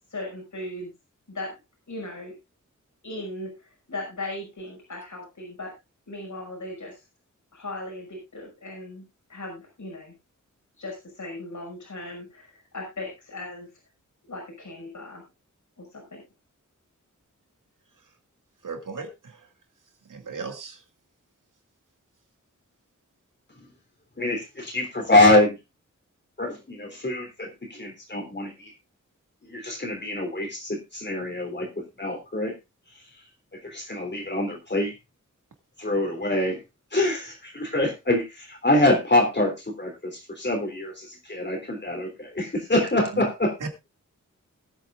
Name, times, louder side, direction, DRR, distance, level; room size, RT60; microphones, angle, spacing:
voice 1, 0.1-0.9 1.3-1.6 1.9-2.3 3.0-5.7 6.1-7.0 7.5-9.0 9.3-10.1 10.8-13.7 14.3-15.2 15.8-16.2, left 2 dB, 70° left, 0 dB, 5.8 m, -37 dB
voice 2, 18.6-19.4 20.1-20.8 43.1-43.2 43.6-43.9, right 4 dB, 90° right, 5 dB, 2.4 m, -36 dB
voice 3, 24.2-25.6 26.4-28.5 29.5-31.7 32.0-32.5 33.6-34.9 35.8-36.6 36.9-40.1 40.4-43.5, left 1 dB, 35° left, 1 dB, 3.4 m, -24 dB
20.5 x 8.9 x 2.5 m, 0.24 s
wide cardioid pair, 105°, 31 cm